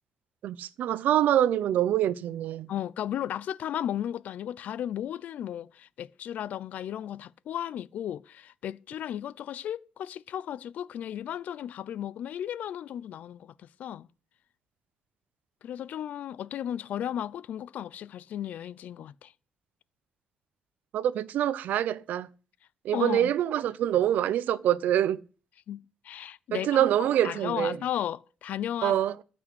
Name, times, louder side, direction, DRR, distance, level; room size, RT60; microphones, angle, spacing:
voice 1, 0.4-2.7 20.9-22.3 22.8-25.2 26.5-27.8 28.8-29.1, right 11 dB, 80° right, 0.6 m, -25 dB
voice 2, 2.7-14.1 15.6-19.3 22.9-23.3 25.7-29.0, left 10 dB, 65° left, 0.5 m, -35 dB
13.5 x 6.1 x 7.8 m
wide cardioid pair, 175°, 3 cm